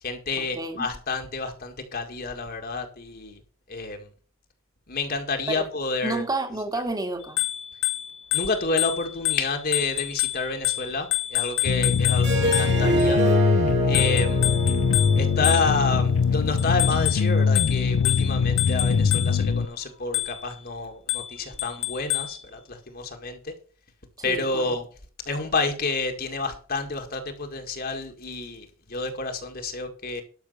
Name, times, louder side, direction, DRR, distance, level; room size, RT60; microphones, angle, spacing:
voice 1, 0.0-3.4 3.7-4.1 4.9-6.2 8.3-13.2 13.9-14.5 15.2-23.5 24.2-24.9 25.3-30.2, left 3 dB, 45° left, 4 dB, 1.9 m, -29 dB
voice 2, 0.6-0.9 5.5-5.6 6.0-7.4 24.2-24.8, right 2 dB, 20° right, 6 dB, 2.0 m, -30 dB
Bicycle bell, 7.2-13.0 13.9-16.0 16.6-19.5 20.1-20.6 21.1-22.4, left 16 dB, 65° left, 1.9 m, -29 dB
sound 1, 11.7-19.7, left 5 dB, 90° left, 0.5 m, -22 dB
Harp, 12.2-17.3, right 1 dB, 55° right, 3.9 m, -27 dB
12.0 x 6.6 x 6.5 m, 0.40 s
head